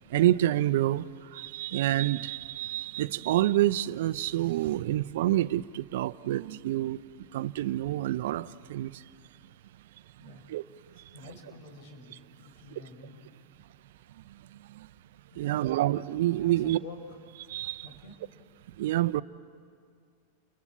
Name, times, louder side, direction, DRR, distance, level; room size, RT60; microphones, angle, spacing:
voice 1, 0.1-7.0 7.3-9.0 10.2-10.6 11.0-11.1 14.5-14.9 15.4-16.8 17.5-17.9 18.8-19.2, right 14 dB, 70° right, 0.6 m, -28 dB
voice 2, 10.2-10.5 10.9-13.5 15.3-15.8 16.4-17.2 17.8-18.2, left 3 dB, 55° left, 5.4 m, -48 dB
30.0 x 22.5 x 8.4 m
hypercardioid pair, 120°, 0 cm